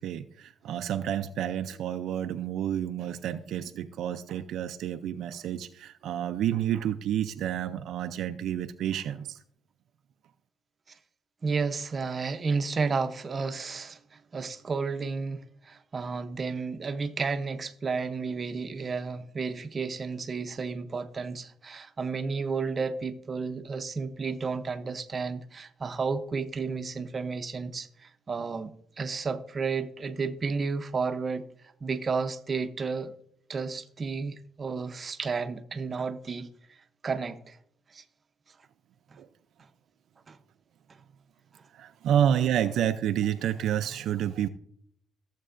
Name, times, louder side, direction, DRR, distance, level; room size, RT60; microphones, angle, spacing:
voice 1, 0.0-9.4 39.2-39.3 41.8-44.5, right 10 dB, 75° right, 0.4 m, -29 dB
voice 2, 11.4-33.2 33.5-36.8 37.0-37.6 37.9-38.0 39.1-39.2 40.3-40.4, right 4 dB, 35° right, 0.7 m, -32 dB
15.0 x 7.4 x 2.5 m
cardioid pair, 110°, 0 cm